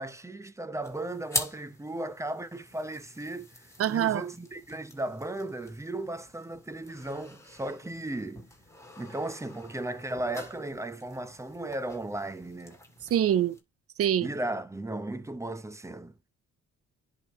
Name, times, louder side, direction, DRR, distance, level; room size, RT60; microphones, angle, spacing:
voice 1, 0.0-8.5 9.0-12.8 14.2-16.1, right 1 dB, 10° right, 0.9 m, -36 dB
sound 1, 0.8-13.6, left 1 dB, 10° left, 2.3 m, -43 dB
voice 2, 3.8-4.2 13.1-13.6 14.0-14.3, right 10 dB, 50° right, 0.6 m, -24 dB
10.5 x 3.7 x 3.1 m
cardioid pair, 90°, 30 cm